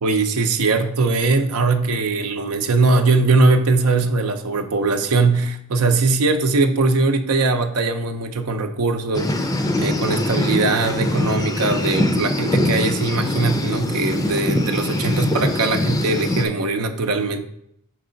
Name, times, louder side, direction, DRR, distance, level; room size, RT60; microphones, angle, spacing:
voice 1, 0.0-17.4, right 3 dB, 80° right, 6 dB, 0.6 m, -20 dB
sound 1, 9.1-16.4, left 1 dB, 15° left, 0.5 m, -22 dB
5.6 x 4.7 x 3.9 m, 0.74 s
head